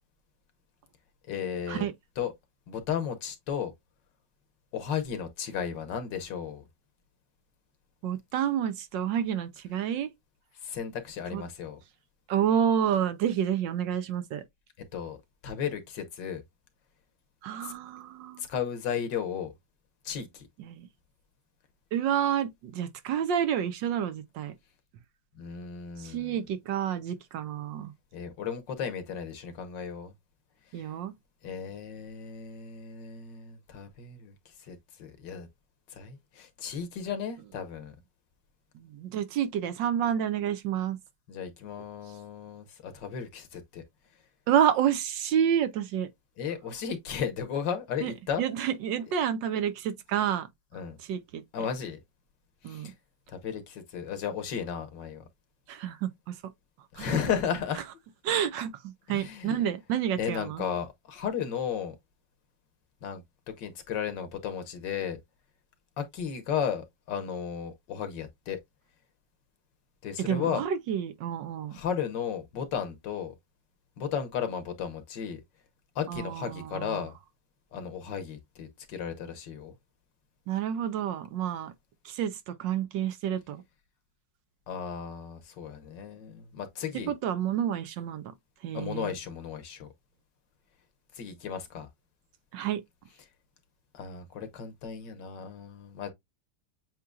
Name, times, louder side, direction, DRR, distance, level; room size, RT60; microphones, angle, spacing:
voice 1, 1.3-1.9 2.2-2.3 2.7-3.7 4.7-6.6 10.6-11.8 14.9-15.2 15.4-16.4 17.6-17.7 18.4-19.5 20.0-20.5 25.4-26.4 28.1-30.1 31.4-34.3 34.7-35.5 35.9-37.9 41.3-43.8 46.4-48.4 50.7-51.0 51.5-52.0 52.7-52.9 53.3-55.2 56.9-57.8 59.1-59.6 60.2-61.9 63.0-65.2 66.0-68.6 70.0-70.6 71.7-73.3 74.0-75.4 75.9-77.1 77.7-79.7 84.7-87.1 88.7-89.9 91.1-91.9 93.9-96.1, left 7 dB, 70° left, 1.6 m, -34 dB
voice 2, 8.0-10.1 11.3-11.4 12.3-14.4 17.4-18.4 20.6-20.9 21.9-24.5 26.0-27.9 30.7-31.1 38.7-41.0 44.5-46.1 48.0-48.1 48.4-50.5 51.1-51.4 52.6-52.9 55.7-56.3 57.0-57.1 58.2-60.6 70.2-71.8 76.1-77.0 80.5-81.7 82.0-83.6 87.1-88.2 88.6-89.2 92.5-92.8, right 9 dB, 75° right, 1.4 m, -29 dB
7.5 x 2.9 x 2.3 m
omnidirectional pair, 2.1 m